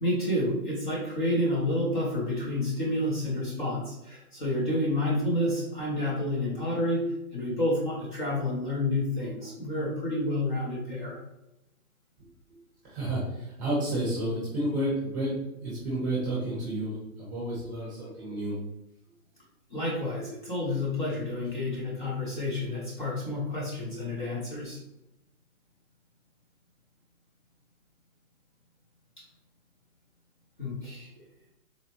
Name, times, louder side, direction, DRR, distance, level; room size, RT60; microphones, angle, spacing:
voice 1, 0.0-11.2 19.7-24.8 29.2-29.3 30.6-31.1, left 1 dB, 35° left, -5 dB, 0.7 m, -29 dB
voice 2, 12.8-18.6, right 1 dB, 15° right, -7 dB, 0.8 m, -31 dB
4.0 x 2.1 x 2.9 m, 0.90 s
hypercardioid pair, 175°, 45 cm